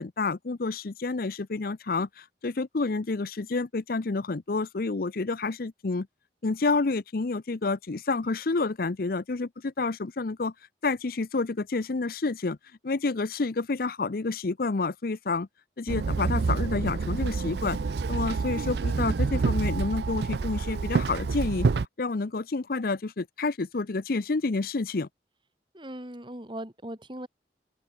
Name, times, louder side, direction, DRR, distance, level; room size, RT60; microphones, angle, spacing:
voice 1, 0.0-6.1 6.4-10.5 10.8-12.6 12.8-15.5 15.8-17.8 18.1-21.7 22.0-25.1, left 3 dB, 55° left, 0.6 m, -29 dB
Walk footsteps / Chatter / Hiss, 15.9-21.9, right 4 dB, 65° right, 0.5 m, -27 dB
voice 2, 25.7-27.3, right 1 dB, 25° right, 3.8 m, -39 dB
open air
head